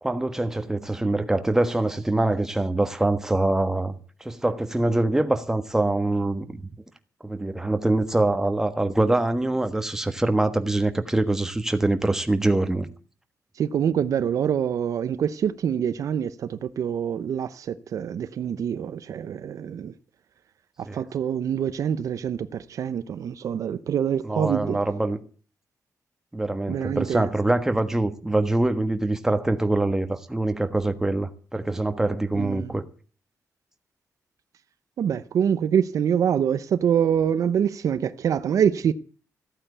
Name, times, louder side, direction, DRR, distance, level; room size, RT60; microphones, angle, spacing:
voice 1, 0.0-6.6 7.2-12.9 20.8-21.0 24.2-25.2 26.3-32.8, right 2 dB, 10° right, 1.4 m, -24 dB
voice 2, 13.6-19.9 20.8-24.8 26.7-27.3 32.3-32.7 35.0-38.9, right 8 dB, 70° right, 0.7 m, -25 dB
14.5 x 9.0 x 8.2 m
wide cardioid pair, 140°, 6 cm